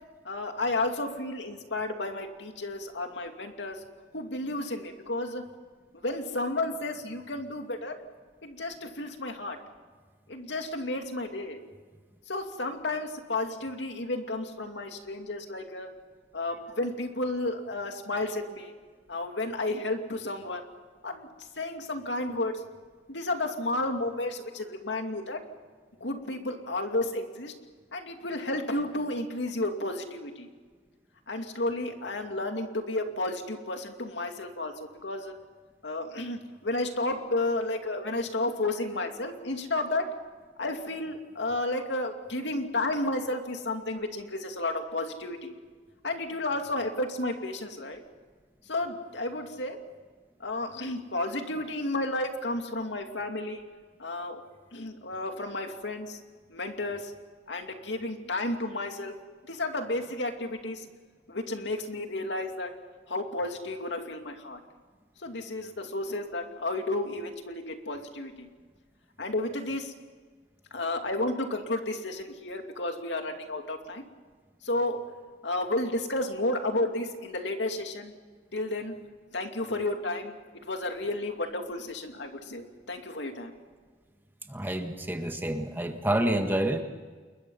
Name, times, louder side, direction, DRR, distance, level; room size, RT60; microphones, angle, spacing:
voice 1, 0.2-3.8 4.1-5.4 5.9-8.0 8.4-9.6 10.3-11.6 12.3-15.9 16.3-18.7 19.1-20.6 21.0-21.3 21.6-22.6 23.1-25.4 26.0-27.5 27.9-30.5 31.3-35.3 35.8-40.1 40.6-45.6 46.0-48.0 48.7-49.8 50.4-53.6 54.0-54.4 54.7-56.2 56.5-57.1 57.5-59.1 59.5-60.9 61.3-62.7 63.1-64.6 65.2-68.5 69.2-69.9 70.7-74.0 74.6-75.0 75.4-78.1 78.5-78.9 79.3-80.4 80.6-83.5, left 2 dB, 75° left, 5 dB, 2.6 m, -32 dB
voice 2, 84.5-86.8, right 1 dB, 10° right, 5 dB, 1.7 m, -28 dB
29.0 x 22.0 x 5.8 m, 1.5 s
head